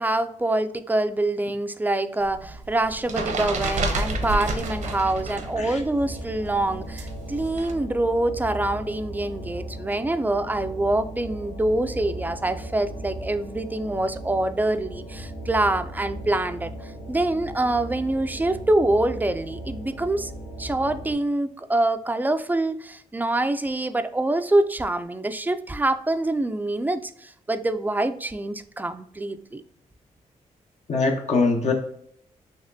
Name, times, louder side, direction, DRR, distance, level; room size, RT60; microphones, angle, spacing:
voice 1, 0.0-20.3 20.6-29.6, right 2 dB, 15° right, 10 dB, 0.3 m, -25 dB
sound 1, 2.2-5.6 5.8-7.7, right 2 dB, 75° right, 0.8 m, -29 dB
sound 2, 3.9-21.1, right 1 dB, 85° left, 1.1 m, -37 dB
voice 2, 30.9-31.7, left 3 dB, 60° left, 2 dB, 0.7 m, -22 dB
4.1 x 2.9 x 2.6 m, 0.70 s
cardioid pair, 75°, 13 cm